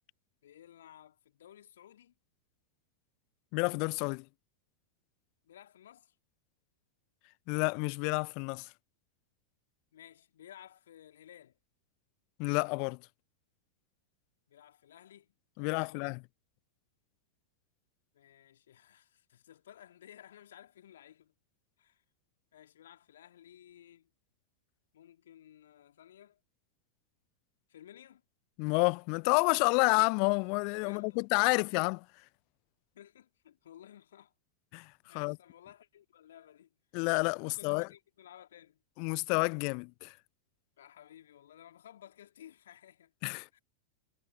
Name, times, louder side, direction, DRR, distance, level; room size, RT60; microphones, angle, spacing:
voice 1, 0.4-2.1 5.4-6.1 9.9-11.6 14.5-16.2 18.1-21.3 21.8-22.0 22.5-24.1 24.9-26.4 27.7-28.2 30.8-31.8 32.9-34.3 35.0-36.7 37.4-38.8 40.8-43.1 43.5-43.6, left 11 dB, 60° left, 3.1 m, -56 dB
voice 2, 3.5-4.2 7.5-8.7 12.4-13.0 15.6-16.2 28.6-32.0 34.7-34.9 35.1-35.4 36.9-37.9 39.0-40.1 43.2-43.6, left 37 dB, 45° left, 0.6 m, -29 dB
figure-of-eight pair, 90°, 0 cm